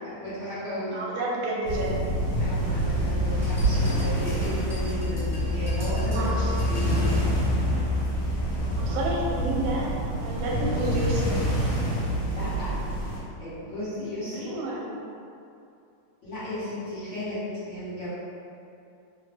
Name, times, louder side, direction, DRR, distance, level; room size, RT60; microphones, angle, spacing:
voice 1, 0.0-1.0 2.4-7.1 12.2-12.8 13.4-14.6 16.2-18.1, equal, 45° left, -14 dB, 1.4 m, -34 dB
voice 2, 0.9-2.1 6.1-6.5 8.7-9.9 10.2-11.4 14.3-14.9, right 1 dB, 85° right, -3 dB, 1.4 m, -30 dB
sound 1, 1.6-13.2, equal, 70° left, 1.3 m, -26 dB
sound 2, 3.4-7.3, equal, 5° right, 0.4 m, -45 dB
3.1 x 2.1 x 3.3 m, 2.6 s
omnidirectional pair, 2.1 m